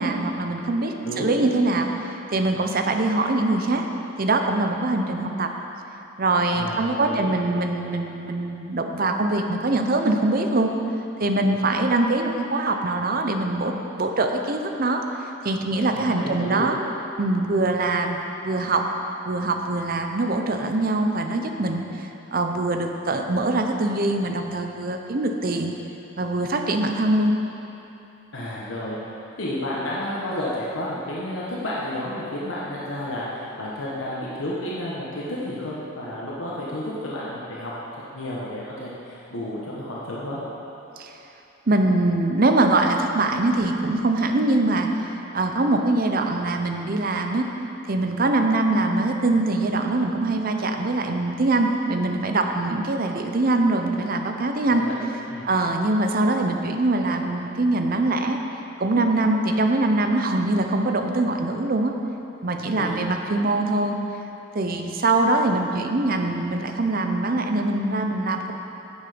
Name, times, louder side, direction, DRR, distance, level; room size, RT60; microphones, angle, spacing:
voice 1, 0.0-3.8 4.2-5.5 6.2-10.7 11.2-16.8 17.2-18.2 18.4-18.9 19.2-25.7 26.2-27.3 41.0-41.1 41.7-44.9 45.3-47.4 47.9-54.8 55.4-58.4 58.8-61.9 62.4-64.0 64.5-68.5, right 2 dB, 45° right, 4 dB, 0.6 m, -23 dB
voice 2, 1.0-1.5 6.5-7.3 11.4-11.6 15.9-16.7 28.3-29.0 29.4-37.7 38.1-40.4 54.7-55.0 55.3-55.5 62.6-63.1, left 1 dB, 80° left, -6 dB, 1.3 m, -31 dB
10.0 x 7.2 x 5.1 m, 2.9 s
head